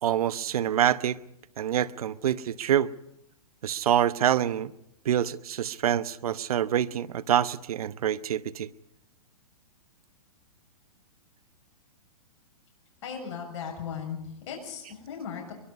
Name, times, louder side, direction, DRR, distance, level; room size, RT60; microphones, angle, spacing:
voice 1, 0.0-1.2 1.6-2.9 3.6-4.7 5.0-8.7, right 10 dB, 70° right, 1.0 m, -26 dB
voice 2, 13.0-15.5, left 7 dB, 50° left, 6.9 m, -37 dB
23.0 x 22.0 x 5.4 m
hypercardioid pair, 140°, 19 cm